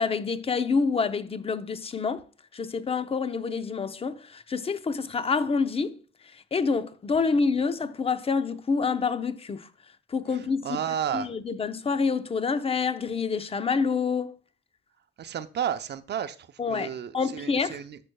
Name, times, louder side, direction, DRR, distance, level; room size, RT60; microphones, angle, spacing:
voice 1, 0.0-2.3 2.5-6.0 6.3-9.7 10.1-10.8 11.1-14.3 16.6-17.8, left 5 dB, 30° left, 0.7 m, -27 dB
voice 2, 10.6-11.3 15.2-18.0, right 9 dB, 60° right, 0.7 m, -32 dB
13.5 x 6.5 x 2.3 m
cardioid pair, 90°, 20 cm